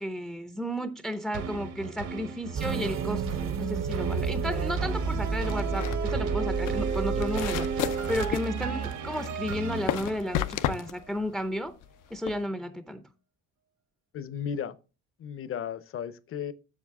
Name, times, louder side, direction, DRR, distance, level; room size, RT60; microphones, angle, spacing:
voice 1, 0.0-3.2 3.6-11.7 12.1-13.0, equal, ahead, 0.5 m, -33 dB
sound 1, 1.3-10.7 11.2-11.3, right 6 dB, 65° right, 1.4 m, -35 dB
sound 2, 2.5-8.3, right 5 dB, 45° right, 0.8 m, -30 dB
sound 3, 5.4-12.4, left 12 dB, 90° left, 0.7 m, -34 dB
voice 2, 14.1-14.8 15.2-16.5, left 8 dB, 45° left, 0.7 m, -34 dB
7.3 x 7.2 x 3.6 m
cardioid pair, 130°, 31 cm